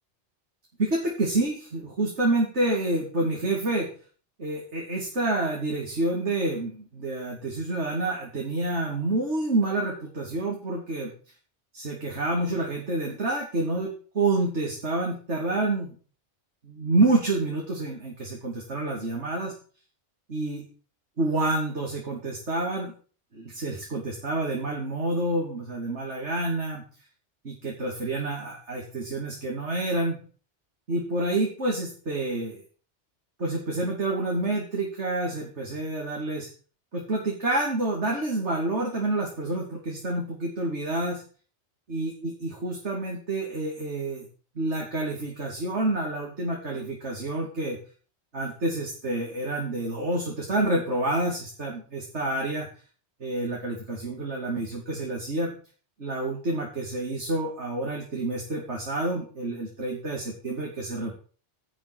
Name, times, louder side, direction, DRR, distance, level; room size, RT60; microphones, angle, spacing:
voice 1, 0.8-3.9 4.4-11.1 11.7-16.0 16.6-19.5 20.3-20.7 21.2-22.9 23.3-26.9 27.4-30.2 30.9-32.6 33.4-36.5 36.9-41.2 41.9-44.2 44.5-47.8 48.3-52.7 53.2-55.5 56.0-61.1, right 2 dB, 75° right, -2 dB, 3.1 m, -28 dB
11.0 x 6.2 x 8.3 m, 0.41 s
omnidirectional pair, 1.2 m